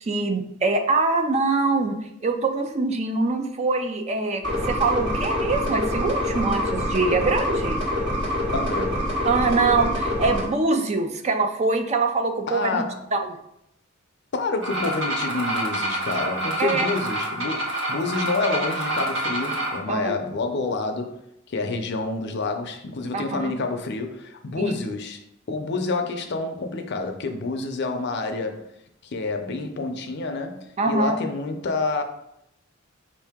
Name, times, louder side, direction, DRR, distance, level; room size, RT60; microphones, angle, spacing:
voice 1, 0.0-7.8 9.2-12.8 13.1-13.4 16.6-16.9 19.9-20.2 23.1-23.5 24.6-24.7 30.8-31.2, right 3 dB, 35° right, 6 dB, 0.4 m, -24 dB
sound 1, 4.4-10.4, left 1 dB, 60° right, 1.4 m, -26 dB
voice 2, 8.5-9.0 12.5-13.0 14.3-21.2 21.5-25.2 25.5-28.6 29.0-32.0, left 3 dB, 55° left, 6 dB, 0.5 m, -28 dB
sound 2, 14.6-19.8, right 1 dB, 90° right, 1.1 m, -27 dB
5.1 x 2.7 x 3.5 m, 0.79 s
head